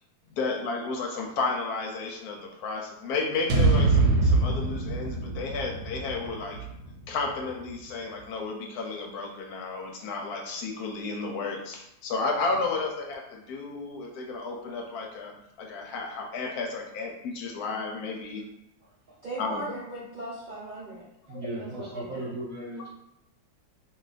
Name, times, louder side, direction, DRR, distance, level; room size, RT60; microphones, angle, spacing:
voice 1, 0.3-6.6 7.1-18.4 19.4-19.6 21.3-21.4, left 3 dB, 75° left, 1 dB, 1.0 m, -32 dB
sound 1, 3.5-7.7, right 3 dB, 85° right, 1.2 m, -25 dB
voice 2, 19.2-21.1 21.6-22.3, right 2 dB, 70° right, -7 dB, 0.4 m, -39 dB
voice 3, 21.3-22.9, right 1 dB, 40° right, -5 dB, 0.9 m, -36 dB
2.6 x 2.3 x 3.9 m, 0.84 s
omnidirectional pair, 1.7 m